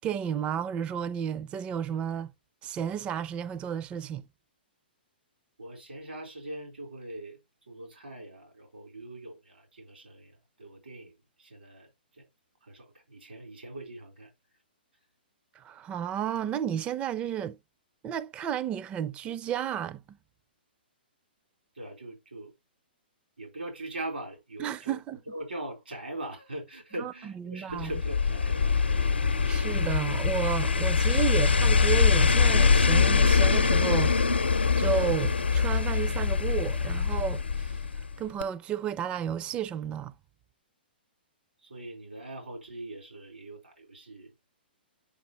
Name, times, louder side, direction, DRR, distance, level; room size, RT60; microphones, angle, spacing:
voice 1, 0.0-2.3 2.6-4.2 15.6-17.6 18.0-20.2 24.6-25.2 27.0-27.1 27.4-27.9 29.5-34.3 34.8-40.1, right 9 dB, 20° right, 0.4 m, -32 dB
voice 2, 5.6-7.4 7.7-12.3 12.6-14.3 21.7-22.5 23.4-25.0 25.3-29.1 41.6-44.3, right 1 dB, 85° right, 3.7 m, -41 dB
sound 1, 27.8-38.1 38.4-38.5, left 5 dB, 90° left, 0.7 m, -23 dB
8.4 x 5.4 x 2.9 m
hypercardioid pair, 125°, 6 cm